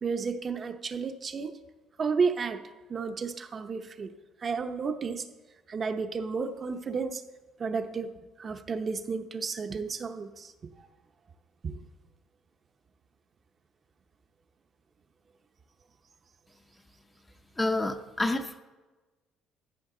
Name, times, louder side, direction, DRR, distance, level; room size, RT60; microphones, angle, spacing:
voice 1, 0.0-1.5 2.0-2.6 2.9-4.1 4.4-5.3 5.7-7.2 7.6-8.1 8.4-10.5 11.6-11.8, right 5 dB, 30° right, 8 dB, 0.7 m, -32 dB
voice 2, 17.6-18.6, left 2 dB, 10° left, 7 dB, 0.6 m, -28 dB
14.5 x 14.0 x 3.8 m, 1.2 s
cardioid pair, 155°, 0 cm